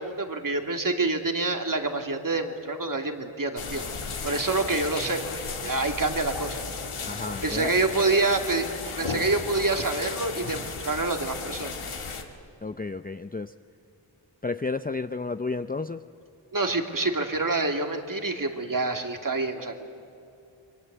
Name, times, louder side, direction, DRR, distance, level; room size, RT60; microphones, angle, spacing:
voice 1, 0.0-3.9 4.2-6.7 7.4-11.7 16.5-19.7, right 3 dB, 40° right, 4 dB, 2.8 m, -27 dB
sound 1, 3.6-12.2, left 4 dB, 85° left, 2.2 m, -35 dB
voice 2, 7.1-7.7 12.6-13.5 14.4-16.0, left 3 dB, 20° left, 9 dB, 0.6 m, -32 dB
29.0 x 23.0 x 8.2 m, 2.8 s
cardioid pair, 50°, 49 cm